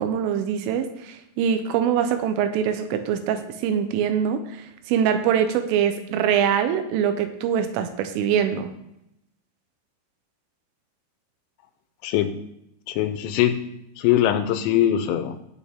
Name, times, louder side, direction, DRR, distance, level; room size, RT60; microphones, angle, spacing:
voice 1, 0.0-4.4 4.9-8.7, right 8 dB, 85° right, 9 dB, 3.5 m, -23 dB
voice 2, 12.0-12.4 12.9-13.6 14.0-15.4, left 11 dB, 90° left, 10 dB, 3.4 m, -22 dB
18.0 x 6.7 x 3.6 m, 0.81 s
omnidirectional pair, 5.6 m